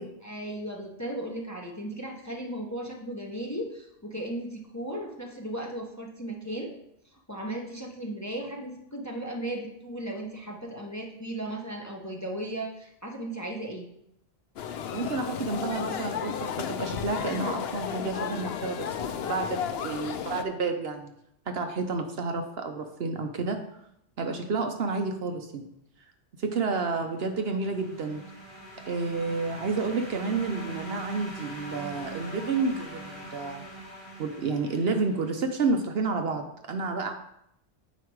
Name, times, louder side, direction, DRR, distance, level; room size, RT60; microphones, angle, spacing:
voice 1, 0.2-6.7 7.1-13.8, right 1 dB, 15° left, 0 dB, 0.8 m, -36 dB
sound 1, 14.6-20.4, left 8 dB, 65° left, 0.8 m, -33 dB
voice 2, 14.9-21.1 21.5-23.6 24.2-25.7 26.4-28.2 28.9-33.6 34.2-37.1, right 4 dB, 60° right, 5 dB, 0.9 m, -30 dB
sound 2, 27.1-35.7, right 1 dB, 45° right, 3.6 m, -43 dB
8.0 x 4.7 x 4.6 m, 0.76 s
omnidirectional pair, 1.2 m